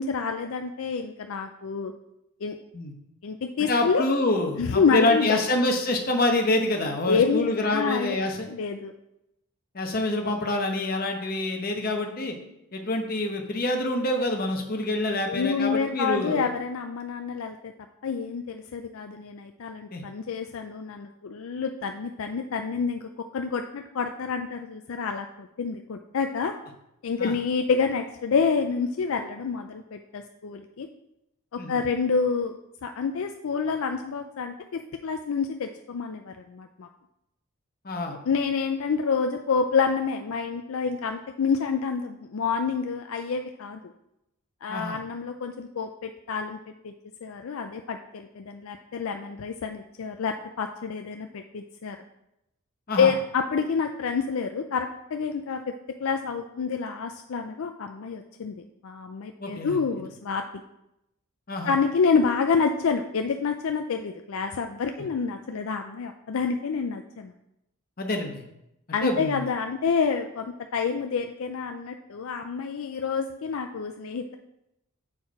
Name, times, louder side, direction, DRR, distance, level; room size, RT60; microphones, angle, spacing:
voice 1, 0.0-1.9 2.4-2.6 3.2-4.0 4.6-5.4 7.1-8.2 8.5-8.9 15.2-17.7 18.0-26.5 27.0-30.9 31.5-32.5 32.8-36.9 38.3-43.8 44.6-46.6 46.8-46.9 47.2-52.0 53.0-55.6 56.0-60.4 61.7-67.3 68.9-74.4, left 5 dB, 70° left, 5 dB, 0.4 m, -28 dB
voice 2, 3.6-8.5 9.7-12.4 12.7-16.5 19.9-20.0 27.2-27.3 31.6-31.8 37.8-38.2 44.7-45.0 52.9-53.1 59.4-59.8 61.5-61.7 68.0-68.4 69.0-69.5, left 2 dB, 40° left, 3 dB, 0.9 m, -26 dB
7.6 x 4.4 x 4.7 m, 0.84 s
head